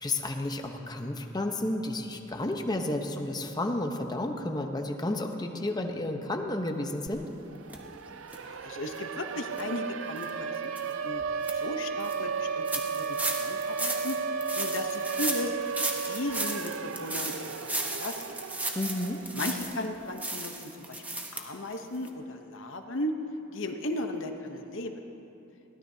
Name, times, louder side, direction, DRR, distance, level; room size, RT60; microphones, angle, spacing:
voice 1, 0.0-7.2 18.7-19.2, left 1 dB, 20° left, 4 dB, 0.9 m, -31 dB
Siren, 7.1-7.2 7.5-19.5, right 5 dB, 75° right, 0.5 m, -34 dB
sound 1, 7.7-7.8 8.3-8.4 8.9-9.0 9.5-9.6 10.2-10.3 10.8-10.9 11.2-11.5 12.0-12.2 12.7-19.9 20.2-21.4 21.7-21.8 22.1-22.2, right 2 dB, 10° right, 1.0 m, -35 dB
voice 2, 8.4-14.2 14.5-15.6 16.1-17.3 17.8-18.2 19.3-21.0 21.3-23.1 23.5-25.0, left 1 dB, 65° left, 5 dB, 0.9 m, -36 dB
22.5 x 16.5 x 2.8 m, 3.0 s
head